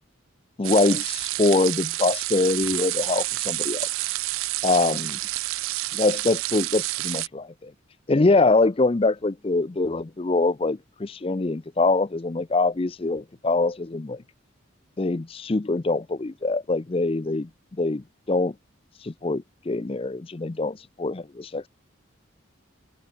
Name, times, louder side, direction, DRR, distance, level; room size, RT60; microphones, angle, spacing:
voice 1, 0.6-3.9 4.6-5.2 5.9-7.7 8.1-14.2 15.0-17.5 17.8-18.5 19.0-21.7, left 3 dB, 25° left, 0.5 m, -24 dB
sound 1, 0.6-7.3, right 20 dB, 80° right, 0.3 m, -29 dB
head